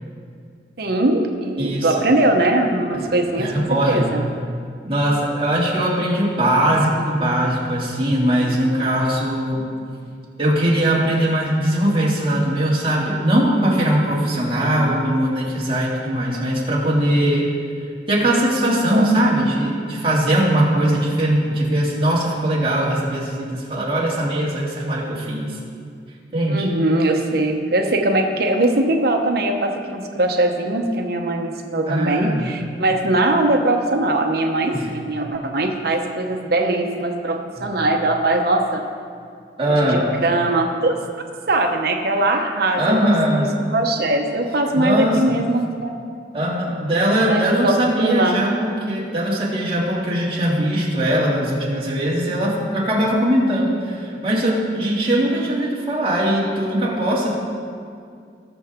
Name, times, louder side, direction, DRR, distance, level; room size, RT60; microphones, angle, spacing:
voice 1, 0.8-4.2 8.4-8.6 14.8-14.9 18.9-19.1 26.5-38.8 39.7-41.0 41.5-43.4 43.7-45.9 47.3-48.4, right 2 dB, 60° right, 3 dB, 1.0 m, -21 dB
voice 2, 1.6-2.0 3.4-4.2 4.8-9.6 10.4-17.5 18.1-25.6 26.3-26.7 31.9-32.5 34.7-34.9 37.6-37.7 39.6-40.0 42.8-43.5 44.7-45.3 46.3-57.4, right 1 dB, 30° right, -6 dB, 2.5 m, -20 dB
19.5 x 6.8 x 3.7 m, 2.3 s
head